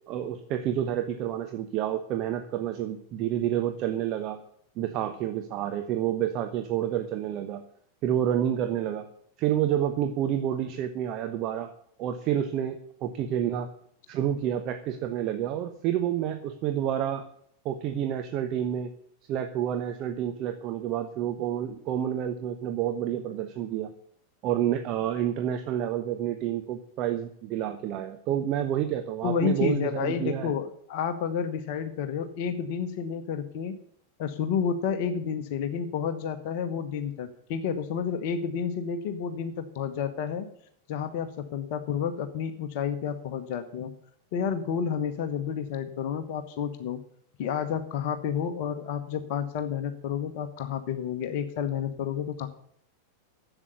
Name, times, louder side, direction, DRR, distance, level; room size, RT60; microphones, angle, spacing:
voice 1, 0.1-4.4 4.8-7.6 8.0-9.1 9.4-11.7 12.0-13.7 14.1-17.3 17.6-18.9 19.3-23.9 24.4-30.5, right 10 dB, 40° right, 7 dB, 1.0 m, -29 dB
voice 2, 29.2-33.7 34.2-40.5 40.9-43.9 44.3-47.0 47.4-52.5, left 7 dB, 50° left, 9 dB, 1.1 m, -30 dB
11.0 x 8.1 x 8.0 m, 0.66 s
figure-of-eight pair, 90°, 0 cm